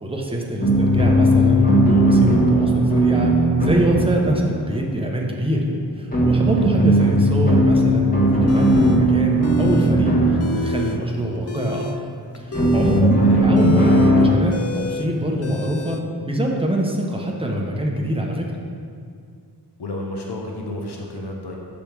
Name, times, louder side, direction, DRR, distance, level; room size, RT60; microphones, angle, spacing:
voice 1, 0.0-5.7 6.0-11.9 12.3-18.5, right 1 dB, 15° right, 0 dB, 0.9 m, -24 dB
sound 1, 0.6-5.0 6.1-11.0 12.5-14.3, right 1 dB, 20° left, 1.5 m, -17 dB
voice 2, 6.8-7.1 13.2-13.5 19.8-21.6, left 2 dB, 70° left, 0 dB, 0.9 m, -31 dB
sound 2, 8.5-9.0 9.4-9.9 10.2-11.0 11.4-16.0, left 2 dB, 40° left, 0.5 m, -29 dB
7.0 x 3.4 x 6.0 m, 2.2 s
wide cardioid pair, 65°, 41 cm